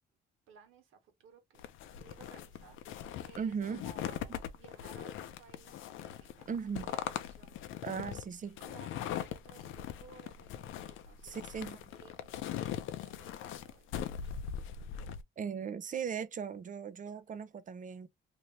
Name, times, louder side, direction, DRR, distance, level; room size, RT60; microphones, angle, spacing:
voice 1, 0.5-1.6 2.0-7.9 8.6-14.3, right 5 dB, 85° right, 1.2 m, -58 dB
sound 1, 1.6-15.2, left 10 dB, 85° left, 0.5 m, -41 dB
voice 2, 3.4-3.9 6.5-6.9 7.8-8.6 11.2-11.8 15.4-18.1, right 6 dB, 40° right, 0.6 m, -38 dB
2.8 x 2.8 x 3.1 m
cardioid pair, 90°, 20 cm